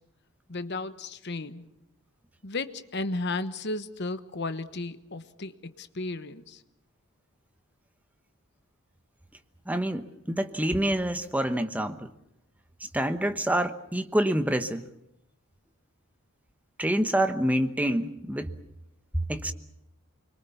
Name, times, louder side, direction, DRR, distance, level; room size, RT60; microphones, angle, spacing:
voice 1, 0.5-1.7 2.4-6.6, left 2 dB, 50° left, 1.1 m, -34 dB
voice 2, 9.7-12.1 12.9-14.8 16.8-18.5 19.1-19.5, right 1 dB, 5° right, 1.0 m, -27 dB
25.0 x 23.0 x 7.1 m
head